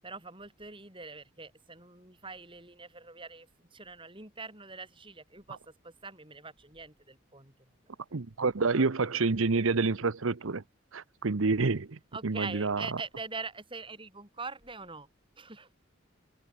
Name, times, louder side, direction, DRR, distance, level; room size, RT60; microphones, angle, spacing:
voice 1, 0.0-7.7 12.1-15.1 15.4-15.7, right 4 dB, 25° right, 7.5 m, -43 dB
voice 2, 8.1-10.6 10.9-12.9, right 4 dB, 80° right, 0.8 m, -28 dB
head